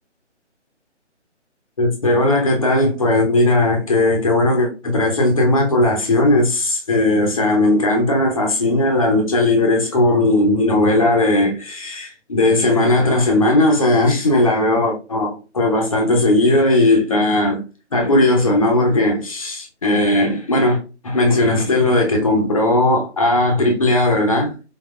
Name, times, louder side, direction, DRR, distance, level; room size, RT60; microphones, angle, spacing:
voice 1, 1.8-17.6 17.9-24.5, left 2 dB, 30° left, 0.8 m, -17 dB
4.5 x 3.8 x 2.3 m
figure-of-eight pair, 145°, 36 cm